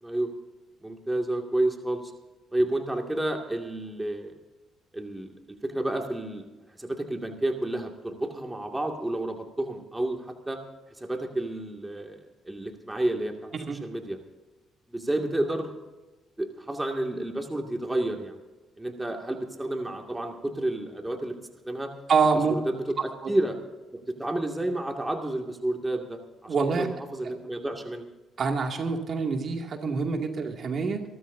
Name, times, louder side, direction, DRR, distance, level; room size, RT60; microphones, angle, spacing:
voice 1, 0.0-0.3 0.8-2.1 2.5-4.3 4.9-5.3 5.6-6.5 6.8-10.6 11.0-13.5 13.8-14.2 14.9-15.7 16.4-18.4 18.8-21.4 21.6-21.9 22.5-23.6 24.1-28.1, right 1 dB, 15° right, 2 dB, 2.2 m, -30 dB
voice 2, 22.1-22.6 26.5-26.9 28.4-31.0, right 5 dB, 50° right, 3 dB, 2.4 m, -26 dB
28.0 x 13.5 x 2.7 m, 1.1 s
supercardioid pair, 75°, 0 cm